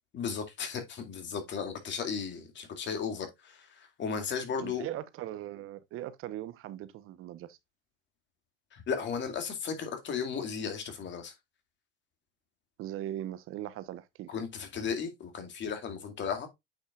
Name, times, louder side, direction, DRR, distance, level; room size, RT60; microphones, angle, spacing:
voice 1, 0.1-4.9 8.7-11.3 14.3-16.5, left 6 dB, 40° left, 2.3 m, -35 dB
voice 2, 4.6-7.6 12.8-14.3, right 13 dB, 45° right, 0.9 m, -39 dB
8.8 x 5.4 x 2.4 m
supercardioid pair, 95°, 29 cm